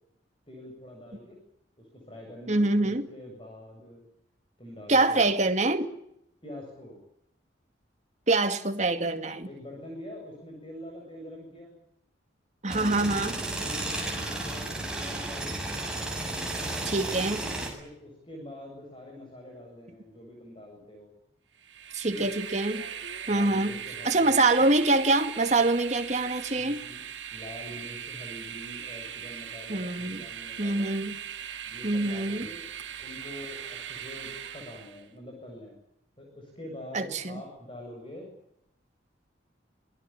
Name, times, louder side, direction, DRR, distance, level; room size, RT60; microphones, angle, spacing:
voice 1, 0.5-1.4 1.8-4.0 4.6-5.3 6.4-7.0 9.4-11.7 13.6-16.0 17.8-21.1 22.1-22.3 23.2-24.6 26.4-27.0 27.3-30.9 31.7-32.7 33.0-35.7 36.2-38.3, left 1 dB, 30° left, 1 dB, 7.8 m, -45 dB
voice 2, 2.5-3.1 4.9-5.9 8.3-9.5 12.6-13.4 16.8-17.4 21.9-22.9 23.3-23.8 24.0-26.8 29.7-30.2 30.6-31.2 31.8-32.5 36.9-37.4, right 2 dB, 40° right, 7 dB, 2.3 m, -25 dB
sound 1, 12.7-17.7, right 2 dB, 5° right, 7.1 m, -33 dB
Train, 21.6-35.1, right 8 dB, 80° right, 2.5 m, -40 dB
27.0 x 20.5 x 8.9 m, 0.78 s
head